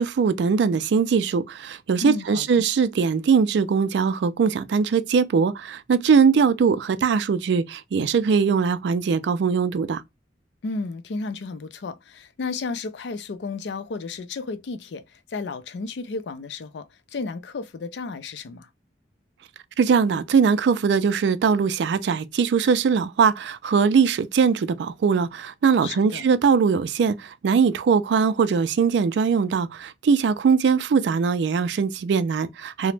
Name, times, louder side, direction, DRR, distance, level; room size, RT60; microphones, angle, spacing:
voice 1, 0.0-10.0 19.8-32.9, right 5 dB, 70° right, 0.3 m, -21 dB
voice 2, 2.0-2.6 10.6-18.7 25.8-26.2, left 4 dB, 70° left, 0.4 m, -33 dB
2.8 x 2.1 x 3.1 m
head